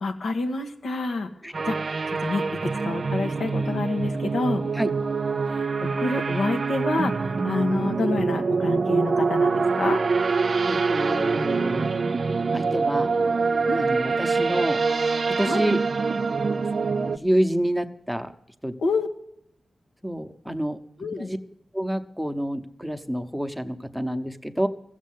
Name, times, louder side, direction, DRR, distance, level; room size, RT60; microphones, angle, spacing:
voice 1, 0.0-1.3 1.7-1.8 2.1-4.6 5.5-10.0 13.7-13.9 15.4-15.6 18.8-19.1 21.0-21.3, left 3 dB, 90° left, 4 dB, 1.3 m, -28 dB
sound 1, 1.5-17.2, right 4 dB, 50° right, 0.5 m, -25 dB
voice 2, 10.7-11.9 12.5-13.1 13.8-14.8 15.3-15.8 17.0-18.3 18.6-18.7 20.0-20.8 21.2-21.4 21.7-24.7, equal, ahead, 8 dB, 0.9 m, -28 dB
15.0 x 7.4 x 9.3 m, 0.74 s
wide cardioid pair, 120°, 0 cm